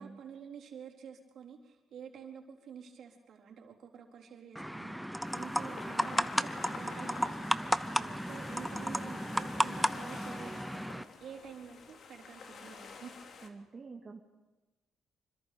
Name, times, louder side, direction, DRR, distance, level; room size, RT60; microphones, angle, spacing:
voice 1, 0.0-13.2, right 7 dB, 65° right, 0 dB, 4.1 m, -49 dB
sound 1, 4.6-11.0, equal, ahead, 0.8 m, -34 dB
sound 2, 5.2-13.5, left 5 dB, 60° left, 2.8 m, -49 dB
voice 2, 8.0-8.3 13.4-14.2, right 4 dB, 35° right, 1 dB, 2.1 m, -48 dB
26.5 x 25.0 x 5.2 m, 1.2 s
cardioid pair, 90°, 0 cm